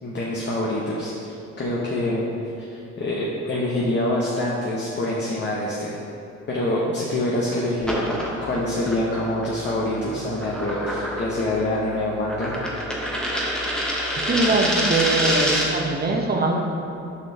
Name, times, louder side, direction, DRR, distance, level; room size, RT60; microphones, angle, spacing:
voice 1, 0.0-2.3 2.6-6.0 6.5-12.5, left 1 dB, 35° left, -5 dB, 0.8 m, -26 dB
sound 1, 7.8-15.9, equal, 5° left, 1.0 m, -27 dB
voice 2, 14.2-16.6, right 2 dB, 30° right, 1 dB, 0.8 m, -22 dB
6.6 x 5.2 x 2.8 m, 2.7 s
cardioid pair, 90°, 30 cm